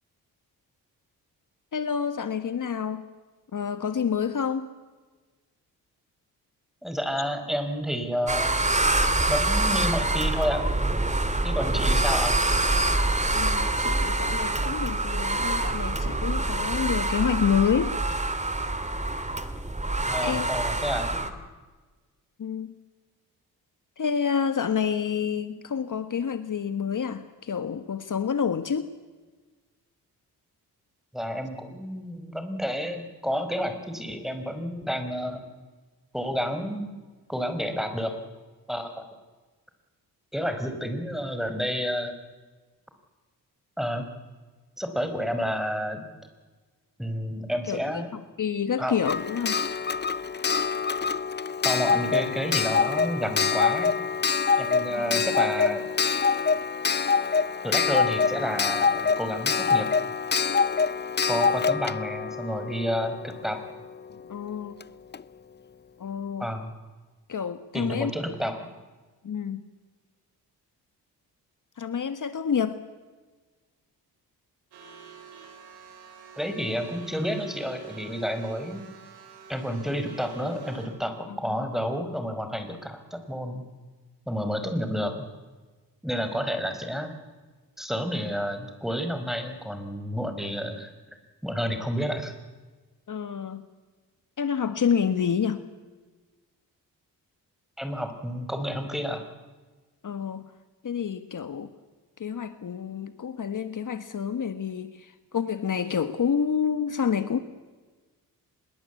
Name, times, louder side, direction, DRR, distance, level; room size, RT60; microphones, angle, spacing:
voice 1, 1.7-3.0 3.5-4.7 13.3-18.2 20.2-20.5 22.4-22.7 24.0-28.9 47.6-48.0 48.4-49.6 54.9-55.2 64.3-64.8 66.0-66.5 67.3-68.1 69.2-69.7 71.8-72.8 81.3-81.4 93.1-93.6 94.4-95.7 100.0-100.4 100.8-101.7 102.2-107.4, left 7 dB, 50° left, 10 dB, 1.6 m, -28 dB
voice 2, 6.8-8.6 9.3-10.7 11.4-12.3 20.1-21.2 31.1-35.4 36.1-36.9 37.3-38.1 38.7-39.0 40.3-42.2 43.8-44.1 44.8-46.1 47.0-48.1 48.8-49.0 51.6-53.9 54.6-55.8 57.6-59.9 61.3-63.6 66.4-66.7 67.7-68.6 76.4-78.8 79.5-83.7 84.3-85.3 86.0-87.1 87.8-90.9 91.4-92.4 97.8-99.2, equal, ahead, 7 dB, 5.3 m, -30 dB
sound 1, 8.3-21.3, right 2 dB, 20° right, 2.9 m, -25 dB
Clock, 49.1-63.6 64.8-64.9 65.1-65.2, left 5 dB, 25° left, 0.7 m, -25 dB
sound 2, 74.7-80.9, right 5 dB, 90° right, 6.1 m, -46 dB
25.0 x 22.0 x 8.4 m, 1.3 s
cardioid pair, 65°, 39 cm